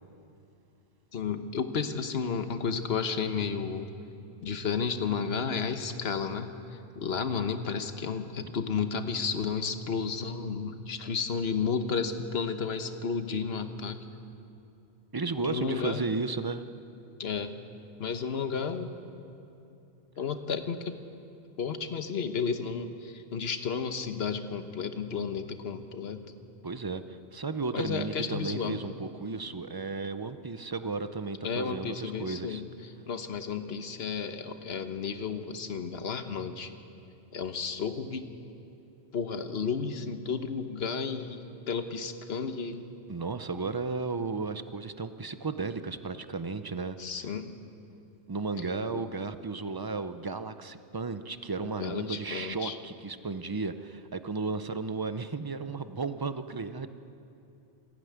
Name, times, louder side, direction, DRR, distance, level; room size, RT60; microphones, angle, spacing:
voice 1, 1.1-3.9 4.4-6.5 6.9-14.0 15.4-16.0 17.2-17.5 18.0-18.9 20.2-20.9 21.6-26.2 27.7-28.8 31.4-32.7 33.1-36.7 37.3-38.3 39.1-42.8 47.0-47.5 48.9-49.0 51.8-52.8, left 6 dB, 65° left, 8 dB, 1.3 m, -32 dB
voice 2, 15.1-16.7 26.6-32.6 43.1-47.0 48.3-56.9, right 4 dB, 25° right, 11 dB, 0.6 m, -34 dB
21.0 x 15.5 x 9.5 m, 2.7 s
omnidirectional pair, 1.2 m